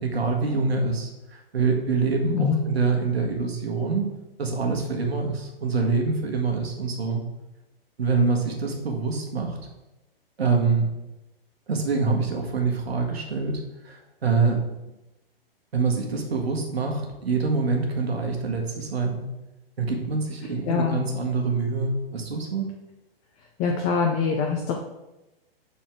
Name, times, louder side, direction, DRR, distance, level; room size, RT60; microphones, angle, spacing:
voice 1, 0.0-4.1 4.4-7.2 8.0-9.6 10.4-10.9 11.7-14.6 15.7-19.3 19.8-22.7, right 4 dB, 90° right, 2 dB, 1.5 m, -25 dB
voice 2, 2.3-2.7 20.6-21.0 23.4-24.8, left 5 dB, 25° left, 1 dB, 0.5 m, -24 dB
5.9 x 4.2 x 4.5 m, 0.98 s
hypercardioid pair, 135°, 30 cm